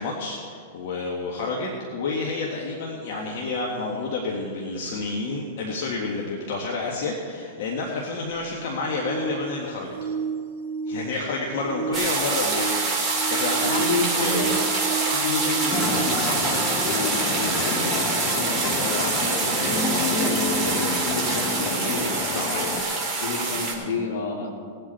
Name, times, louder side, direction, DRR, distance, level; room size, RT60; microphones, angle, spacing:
voice 1, 0.0-10.1 10.9-13.8 14.1-14.5 22.3-22.5, left 3 dB, 60° left, -1 dB, 1.8 m, -29 dB
sound 1, 8.2-18.0 20.3-20.4, right 6 dB, 60° right, 2.6 m, -33 dB
sound 2, 11.9-23.7, right 3 dB, 10° right, 3.3 m, -25 dB
voice 2, 13.6-14.5 15.1-22.7 23.2-24.5, left 3 dB, 75° left, 1 dB, 2.9 m, -31 dB
sound 3, 15.7-22.8, left 3 dB, 30° left, 1.2 m, -29 dB
19.5 x 8.1 x 4.4 m, 2.2 s
hypercardioid pair, 130°, 0 cm